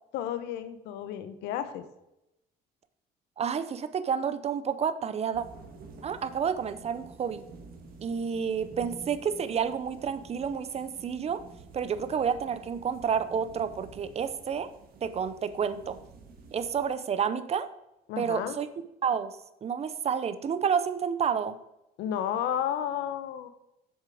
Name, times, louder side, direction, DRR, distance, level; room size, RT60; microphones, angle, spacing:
voice 1, 0.1-1.8 18.1-18.6 22.0-23.5, left 9 dB, 85° left, 11 dB, 0.9 m, -32 dB
voice 2, 3.4-5.4 6.0-7.4 8.0-11.4 11.7-14.7 15.0-16.0 16.5-17.7 18.2-18.7 19.0-21.6, right 7 dB, 40° right, 12 dB, 0.7 m, -30 dB
sound 1, 5.3-16.9, right 4 dB, 60° right, 1.7 m, -50 dB
7.3 x 6.6 x 5.0 m, 0.87 s
cardioid pair, 110°, 17 cm